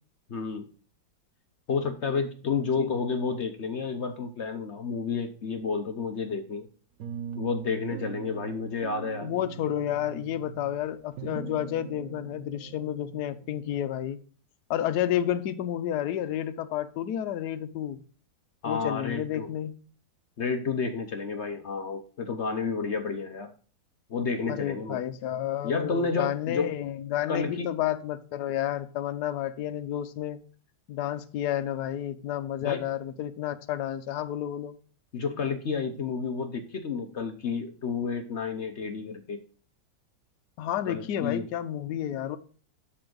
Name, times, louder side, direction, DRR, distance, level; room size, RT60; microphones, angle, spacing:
voice 1, 0.3-0.7 1.7-6.7 7.3-9.3 18.6-19.5 20.4-23.5 24.1-25.0 25.6-26.7 27.3-27.7 32.6-32.8 35.1-39.4 40.9-41.5, left 5 dB, 55° left, 6 dB, 0.9 m, -30 dB
voice 2, 2.4-3.0 9.2-14.2 14.7-18.0 18.6-19.7 24.5-30.4 30.9-34.7 40.6-42.4, left 11 dB, 70° left, 10 dB, 1.2 m, -31 dB
sound 1, 7.0-14.1, right 7 dB, 65° right, 1.0 m, -41 dB
12.5 x 4.4 x 3.9 m, 0.41 s
omnidirectional pair, 1.9 m